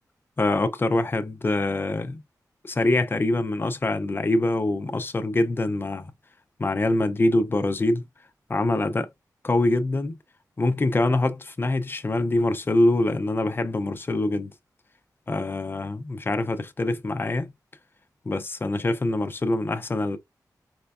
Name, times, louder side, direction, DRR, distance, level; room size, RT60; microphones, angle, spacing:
voice 1, 0.4-2.2 2.6-6.1 6.6-8.0 8.5-9.1 9.4-10.2 10.6-14.5 15.3-17.5 18.3-20.2, left 2 dB, 30° left, 0.5 m, -24 dB
4.3 x 2.2 x 2.3 m
wide cardioid pair, 80°, 7 cm